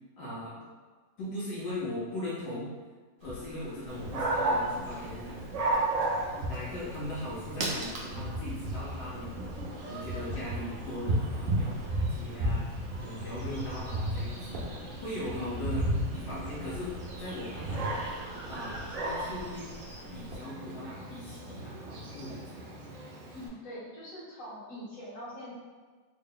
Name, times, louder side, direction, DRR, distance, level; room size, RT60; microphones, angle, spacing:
voice 1, 0.2-0.5 1.2-2.7 3.2-5.5 6.3-9.4 9.8-12.6 13.0-14.7 15.0-15.8 16.1-16.9 17.2-18.0 18.4-19.7 20.1-22.6, left 1 dB, 80° left, -8 dB, 1.5 m, -39 dB
sound 1, 3.2-20.4, equal, 65° right, 0.9 m, -49 dB
Dog, 3.9-23.5, right 1 dB, 85° right, 0.6 m, -34 dB
sound 2, 12.9-20.3, right 1 dB, 40° right, 0.5 m, -50 dB
voice 2, 23.3-25.5, left 1 dB, 50° left, -9 dB, 1.7 m, -43 dB
3.7 x 2.1 x 3.7 m, 1.4 s
omnidirectional pair, 2.0 m